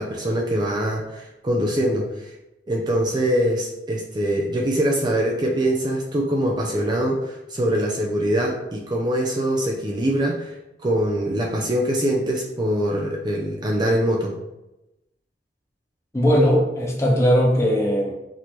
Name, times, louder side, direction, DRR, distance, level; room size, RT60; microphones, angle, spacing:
voice 1, 0.0-2.3 2.7-10.5 10.8-14.4, right 1 dB, 25° right, -1 dB, 0.5 m, -23 dB
voice 2, 16.1-18.1, equal, 15° left, -3 dB, 0.8 m, -19 dB
6.1 x 2.8 x 3.1 m, 0.96 s
head